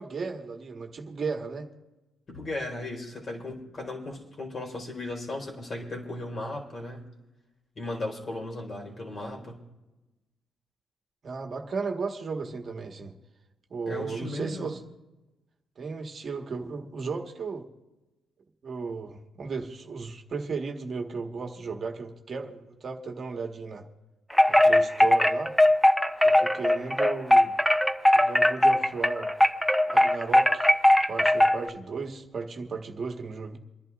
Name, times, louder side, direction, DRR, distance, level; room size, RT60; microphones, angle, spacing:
voice 1, 0.0-1.7 11.2-13.1 13.7-14.8 15.8-17.7 18.6-23.9 24.5-25.5 26.2-27.6 28.1-29.3 29.9-30.7 31.1-33.6, right 4 dB, 45° right, 2 dB, 1.5 m, -35 dB
voice 2, 2.3-7.1 7.7-9.6 13.9-14.7, left 2 dB, 40° left, 0 dB, 4.5 m, -36 dB
Wind chime, 24.3-31.7, left 1 dB, 5° left, 0.8 m, -20 dB
28.5 x 11.0 x 2.5 m, 1.1 s
cardioid pair, 90°, 0 cm